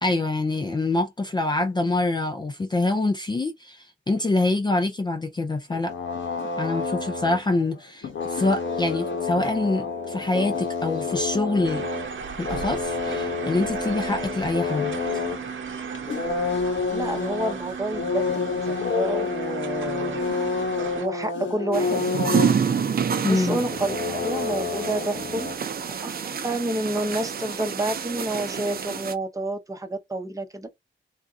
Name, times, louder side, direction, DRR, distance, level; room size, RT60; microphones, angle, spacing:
voice 1, 0.0-5.9 6.6-11.9 12.4-15.2 23.2-23.6, left 2 dB, 20° left, 0.5 m, -25 dB
sound 1, 5.7-7.8 8.0-12.1 12.4-15.4 15.9-22.6 23.0-23.1 23.3-25.6, left 4 dB, 70° left, 1.2 m, -29 dB
sound 2, 11.6-21.1, right 6 dB, 80° right, 0.9 m, -35 dB
voice 2, 16.9-20.2 20.9-22.4 23.3-25.5 26.0-30.7, right 1 dB, 15° right, 0.8 m, -29 dB
sound 3, 21.7-29.1, right 7 dB, 50° right, 0.6 m, -28 dB
3.5 x 2.7 x 3.6 m
wide cardioid pair, 175°, 20 cm